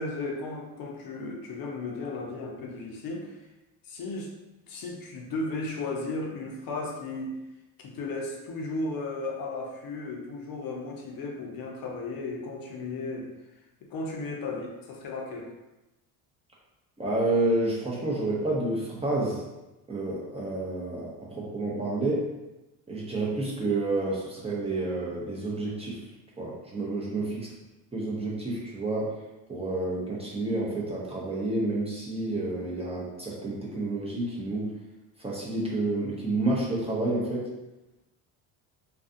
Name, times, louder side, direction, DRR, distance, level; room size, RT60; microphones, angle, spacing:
voice 1, 0.0-3.4 3.8-4.3 4.7-7.4 7.8-13.3 13.8-15.5 26.9-27.2, left 2 dB, 55° left, 0 dB, 0.6 m, -35 dB
voice 2, 17.0-19.4 19.9-22.3 22.9-26.0 26.4-27.5 27.9-29.2 29.5-34.7 35.2-37.5, right 2 dB, 15° right, -5 dB, 0.5 m, -29 dB
2.4 x 2.3 x 2.5 m, 1.0 s
supercardioid pair, 90°, 42 cm